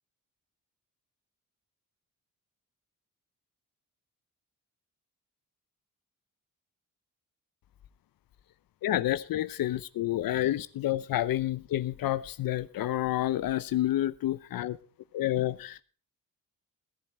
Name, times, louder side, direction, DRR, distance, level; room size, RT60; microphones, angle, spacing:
voice 1, 8.8-14.8 15.1-15.8, left 13 dB, 85° left, 0.8 m, -29 dB
16.5 x 11.0 x 4.5 m
wide cardioid pair, 175°, 34 cm